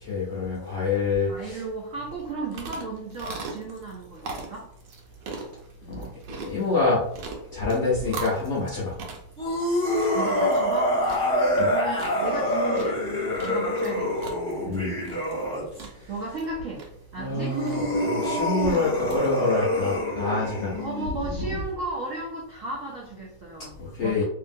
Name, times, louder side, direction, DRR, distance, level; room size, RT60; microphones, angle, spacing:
voice 1, 0.0-1.6 5.9-6.1 6.4-7.0 7.5-8.9 11.6-11.7 14.6-14.9 17.2-20.8 23.8-24.2, left 4 dB, 65° left, -6 dB, 0.7 m, -26 dB
voice 2, 1.3-4.7 10.1-11.0 11.6-14.4 16.1-16.8 17.1-17.6 20.8-23.7 24.0-24.2, right 2 dB, 75° right, -2 dB, 0.7 m, -34 dB
sound 1, 2.1-19.2, right 4 dB, 90° right, 1.3 m, -41 dB
sound 2, 9.4-15.8 17.2-21.6, equal, 5° left, 0.4 m, -26 dB
2.8 x 2.6 x 2.5 m, 0.72 s
omnidirectional pair, 1.9 m